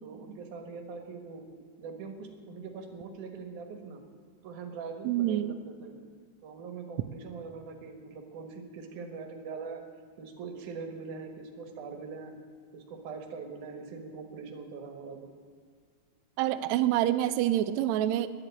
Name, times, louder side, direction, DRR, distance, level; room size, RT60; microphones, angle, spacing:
voice 1, 0.0-1.5 1.8-4.0 4.4-6.0 6.4-9.8 10.2-12.4 12.7-15.3, right 5 dB, 70° right, 5 dB, 2.8 m, -42 dB
voice 2, 5.0-5.6 16.4-18.3, right 13 dB, 85° right, 11 dB, 1.6 m, -27 dB
10.5 x 10.5 x 8.4 m, 2.1 s
omnidirectional pair, 3.9 m